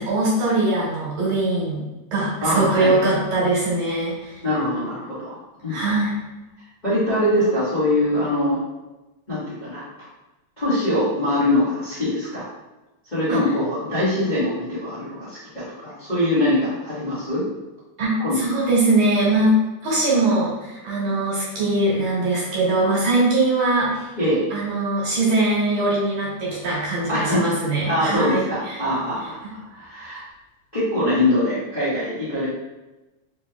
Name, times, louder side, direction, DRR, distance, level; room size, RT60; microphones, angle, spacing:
voice 1, 0.0-1.8 2.1-4.3 5.7-6.1 13.3-13.4 18.0-19.6 19.8-24.1 24.5-28.8, right 2 dB, 60° right, -7 dB, 2.4 m, -21 dB
voice 2, 2.4-2.9 4.4-5.4 5.6-5.8 6.6-8.6 9.3-10.1 10.6-12.5 13.1-17.4 18.2-18.4 24.2-24.4 27.1-27.4 27.9-30.2 30.7-32.5, left 1 dB, 35° left, -12 dB, 0.6 m, -23 dB
5.1 x 3.1 x 2.3 m, 1.1 s
omnidirectional pair, 3.5 m